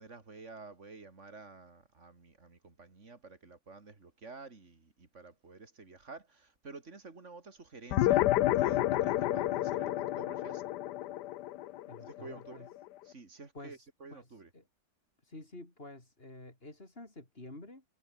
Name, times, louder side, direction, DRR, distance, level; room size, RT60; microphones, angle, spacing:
voice 1, 0.0-8.3 8.5-10.6 12.1-12.7 13.0-14.5, right 3 dB, 40° right, 2.9 m, -50 dB
sound 1, 7.9-12.7, left 14 dB, 70° left, 1.2 m, -30 dB
voice 2, 11.9-12.7 13.5-14.6 15.2-17.8, left 2 dB, 30° left, 5.0 m, -50 dB
omnidirectional pair, 1.9 m